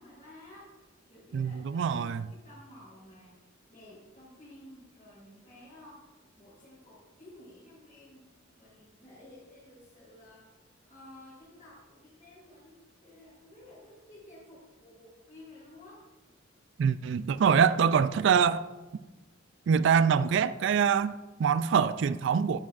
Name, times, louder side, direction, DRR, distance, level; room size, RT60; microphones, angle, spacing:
voice 1, 0.0-8.3 8.6-10.5 10.8-16.0, left 1 dB, 35° left, 3.4 m, -53 dB
voice 2, 1.3-2.3 16.8-18.6 19.7-22.6, right 7 dB, 65° right, 0.3 m, -24 dB
13.5 x 8.7 x 2.5 m
head